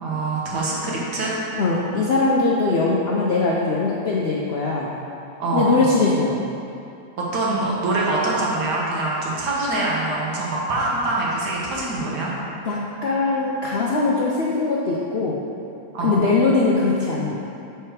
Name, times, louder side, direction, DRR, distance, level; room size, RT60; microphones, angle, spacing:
voice 1, 0.0-1.3 5.4-5.8 7.3-12.3 15.9-16.2, right 2 dB, 70° right, -5 dB, 1.8 m, -24 dB
voice 2, 1.6-4.9 5.5-6.4 12.7-15.4 16.0-17.3, left 3 dB, 75° left, -5 dB, 0.5 m, -21 dB
6.8 x 4.5 x 4.6 m, 2.7 s
omnidirectional pair, 1.9 m